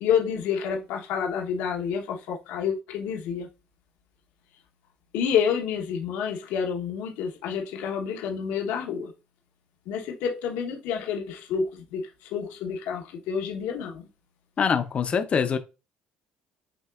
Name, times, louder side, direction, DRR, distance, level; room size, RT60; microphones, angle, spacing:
voice 1, 0.0-3.5 5.1-9.1 9.9-14.1, left 7 dB, 80° left, 1.0 m, -29 dB
voice 2, 14.6-15.6, left 6 dB, 40° left, 0.6 m, -24 dB
7.0 x 2.9 x 2.4 m
supercardioid pair, 95°, 3 cm